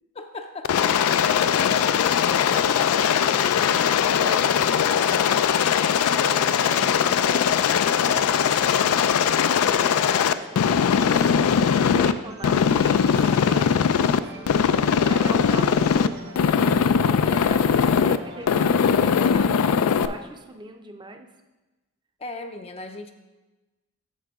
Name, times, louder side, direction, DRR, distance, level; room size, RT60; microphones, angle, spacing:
voice 1, 0.2-0.7 1.6-2.0 6.1-6.5 22.2-23.1, left 3 dB, 30° left, 5 dB, 0.4 m, -36 dB
Aircraft, 0.6-12.1 12.4-14.2 14.5-16.1 16.4-18.2 18.5-20.1, left 7 dB, 90° left, 0.3 m, -20 dB
voice 2, 1.0-5.4 6.6-7.6 8.1-9.8 10.2-11.4 11.9-14.2 15.0-21.3, right 1 dB, 20° right, 5 dB, 0.6 m, -41 dB
sound 1, 9.6-19.1, right 2 dB, 50° right, 1.0 m, -44 dB
8.6 x 6.5 x 3.5 m, 1.1 s
head